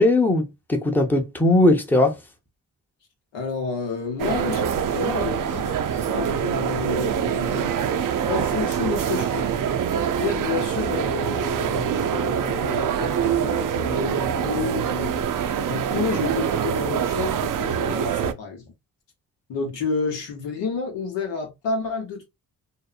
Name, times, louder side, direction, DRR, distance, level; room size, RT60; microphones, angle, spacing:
voice 1, 0.0-2.1, left 2 dB, 5° left, 0.7 m, -19 dB
voice 2, 3.3-7.8 8.2-9.5 10.1-18.7 19.5-22.2, left 4 dB, 85° left, 1.0 m, -30 dB
sound 1, 4.2-18.3, right 8 dB, 50° right, 0.5 m, -25 dB
2.7 x 2.1 x 2.3 m
supercardioid pair, 45°, 42 cm